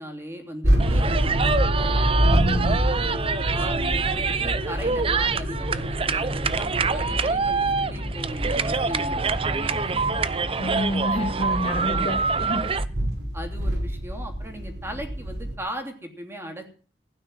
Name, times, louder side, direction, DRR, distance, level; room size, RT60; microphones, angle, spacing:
voice 1, 0.0-1.7 2.3-3.1 3.5-10.2 11.9-12.1 13.3-16.7, equal, 15° right, 3 dB, 3.0 m, -38 dB
sound 1, 0.6-15.6, equal, 75° right, 5.3 m, -27 dB
sound 2, 0.8-12.8, right 5 dB, 30° right, 0.7 m, -26 dB
voice 2, 2.2-2.8 10.6-12.7, left 1 dB, 35° left, 6 dB, 1.3 m, -28 dB
16.0 x 9.7 x 7.8 m, 0.42 s
head